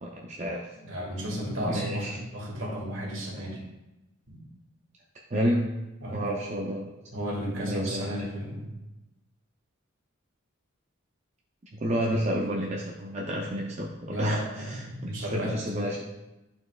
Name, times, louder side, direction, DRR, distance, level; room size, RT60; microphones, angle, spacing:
voice 1, 0.0-0.7 1.6-2.2 5.1-5.8 6.1-6.9 7.2-8.3 11.7-16.0, equal, 35° right, -2 dB, 0.5 m, -30 dB
voice 2, 0.8-3.6 4.3-4.4 6.0-6.3 7.1-8.7 14.1-15.6, equal, 65° right, -3 dB, 1.9 m, -33 dB
10.5 x 4.4 x 2.3 m, 0.99 s
head